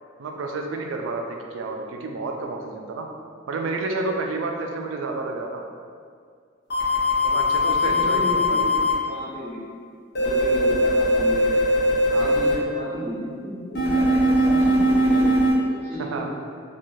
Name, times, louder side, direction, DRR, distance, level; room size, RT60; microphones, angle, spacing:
voice 1, 0.2-3.1 3.5-5.6 7.2-8.9 12.1-12.4 16.1-16.3, right 3 dB, 75° right, 3 dB, 0.3 m, -30 dB
sound 1, 6.7-8.9 10.2-12.5 13.8-15.5, equal, 55° left, 0.7 m, -20 dB
voice 2, 7.5-9.8 10.2-11.6 12.1-16.4, equal, 30° right, -12 dB, 0.9 m, -33 dB
2.5 x 2.3 x 3.0 m, 2.1 s
head